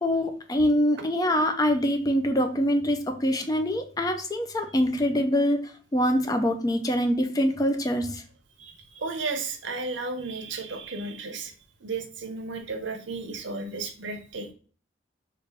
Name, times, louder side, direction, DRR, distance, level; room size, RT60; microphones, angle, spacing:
voice 1, 0.0-8.2, equal, 20° left, 6 dB, 0.4 m, -24 dB
voice 2, 8.6-11.5 11.8-14.5, right 3 dB, 80° right, 7 dB, 0.6 m, -34 dB
3.3 x 2.4 x 3.4 m, 0.40 s
head